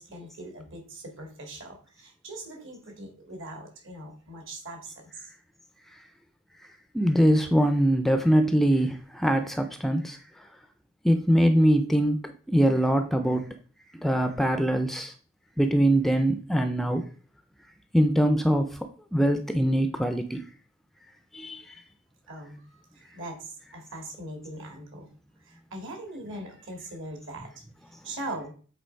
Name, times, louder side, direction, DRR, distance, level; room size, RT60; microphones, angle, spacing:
voice 1, 0.0-5.3 22.3-25.1 25.5-27.6 28.0-28.5, right 1 dB, 60° right, 3 dB, 2.2 m, -41 dB
voice 2, 6.9-10.2 11.0-12.2 12.5-13.5 14.0-15.1 15.6-17.0 17.9-18.7 19.1-20.4 21.3-21.6, equal, ahead, 7 dB, 0.5 m, -22 dB
7.6 x 4.1 x 4.5 m, 0.40 s
head